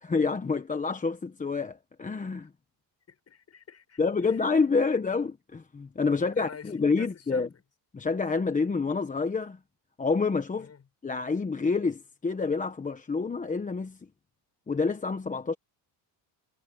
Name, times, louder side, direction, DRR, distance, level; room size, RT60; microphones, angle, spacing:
voice 1, 0.0-2.5 4.0-7.5 7.9-9.6 10.0-10.7 11.0-14.0 14.7-15.5, left 4 dB, 15° left, 1.1 m, -28 dB
voice 2, 3.1-4.5 6.2-7.5 10.6-10.8, left 6 dB, 35° left, 6.9 m, -47 dB
cardioid pair, 140°, 44 cm